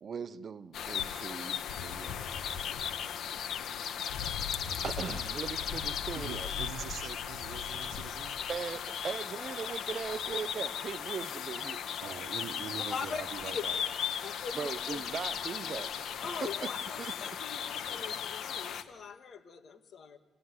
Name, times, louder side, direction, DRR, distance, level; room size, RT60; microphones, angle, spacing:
voice 1, 0.0-2.2 4.1-4.4 4.7-6.5 8.5-11.8 14.6-16.7 17.0-17.1, right 6 dB, 50° right, 14 dB, 1.0 m, -39 dB
sound 1, 0.7-18.8, left 8 dB, 70° left, 1.6 m, -36 dB
voice 2, 6.2-8.4 12.0-13.8, right 9 dB, 70° right, 11 dB, 1.2 m, -43 dB
voice 3, 12.9-13.6 14.2-15.0 16.2-20.2, left 5 dB, 55° left, 6 dB, 2.5 m, -41 dB
30.0 x 17.5 x 9.7 m, 1.2 s
cardioid pair, 90°, 0 cm